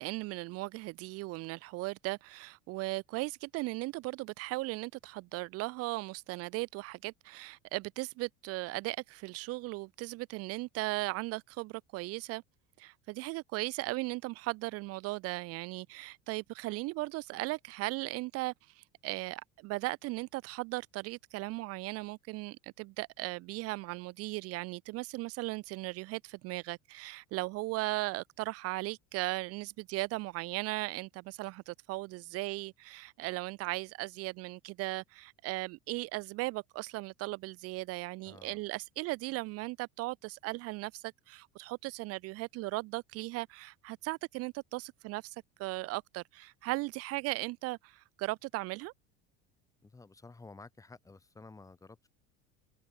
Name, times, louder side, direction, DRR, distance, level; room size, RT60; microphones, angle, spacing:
voice 1, 0.0-12.4 12.8-48.9, right 21 dB, 45° right, 0.9 m, -37 dB
voice 2, 38.2-38.6 49.8-52.1, left 3 dB, 10° left, 5.4 m, -52 dB
cardioid pair, 170°, 33 cm